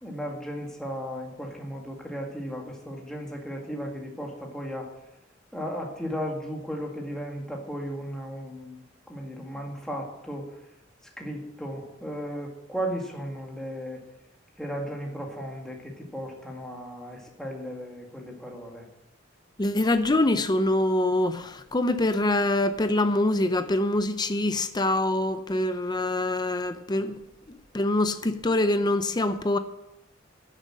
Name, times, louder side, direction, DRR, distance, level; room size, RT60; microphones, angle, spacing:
voice 1, 0.0-4.9 5.5-8.8 9.1-10.5 11.2-14.0 14.6-18.8, equal, 5° left, 1.9 m, -35 dB
voice 2, 19.6-27.2 27.7-29.6, left 1 dB, 20° left, 0.6 m, -24 dB
10.5 x 7.4 x 7.6 m
head